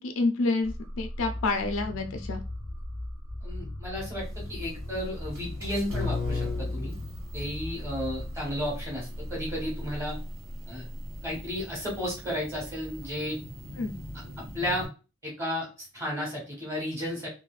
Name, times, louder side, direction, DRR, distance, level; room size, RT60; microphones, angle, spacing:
voice 1, 0.0-2.4 13.8-13.9, left 3 dB, 60° left, 6 dB, 0.4 m, -28 dB
sound 1, 0.6-11.5, left 1 dB, 5° left, 0.6 m, -38 dB
voice 2, 3.4-6.9 7.3-10.2 10.7-10.8 11.2-13.4 14.5-14.9 15.2-17.3, equal, 15° right, -3 dB, 1.2 m, -33 dB
sound 2, 4.2-14.9, left 2 dB, 75° right, 1.7 m, -39 dB
3.1 x 2.6 x 2.3 m, 0.32 s
head